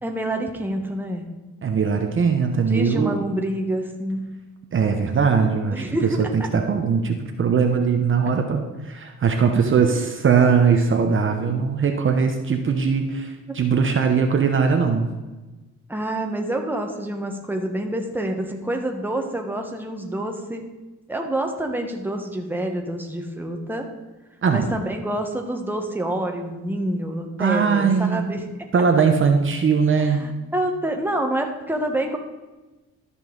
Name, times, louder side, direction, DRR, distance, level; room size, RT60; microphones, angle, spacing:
voice 1, 0.0-1.2 2.5-4.3 5.7-6.5 9.8-10.0 10.2-10.3 15.9-20.7 21.1-23.8 24.5-28.4 30.0-32.2, right 1 dB, 5° right, 3 dB, 1.3 m, -27 dB
voice 2, 1.6-3.2 4.7-15.1 24.4-24.7 27.4-28.3 28.7-30.2, right 5 dB, 40° right, 4 dB, 0.9 m, -20 dB
13.5 x 5.5 x 4.0 m, 1.2 s
cardioid pair, 90°, 30 cm